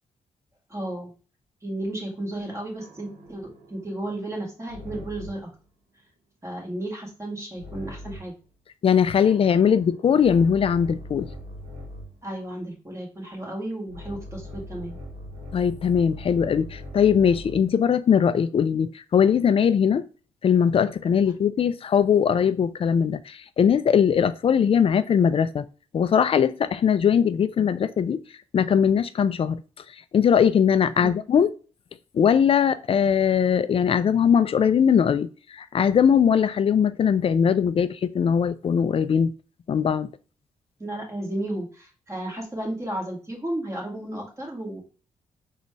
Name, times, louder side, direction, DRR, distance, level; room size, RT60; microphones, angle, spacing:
voice 1, 0.7-1.1 1.6-5.5 6.4-8.3 12.2-15.0 31.0-31.1 40.8-44.8, right 1 dB, 20° right, 1.7 m, -33 dB
sound 1, 2.8-5.5 7.6-8.4 9.2-12.2 13.9-17.8, left 1 dB, 65° right, 1.0 m, -41 dB
voice 2, 8.8-11.3 15.5-20.0 20.4-25.6 25.9-28.2 28.5-29.6 30.1-31.5 32.1-35.3 35.6-39.3 39.7-40.1, left 7 dB, 45° left, 0.4 m, -20 dB
4.1 x 2.4 x 3.0 m
supercardioid pair, 50°, 13 cm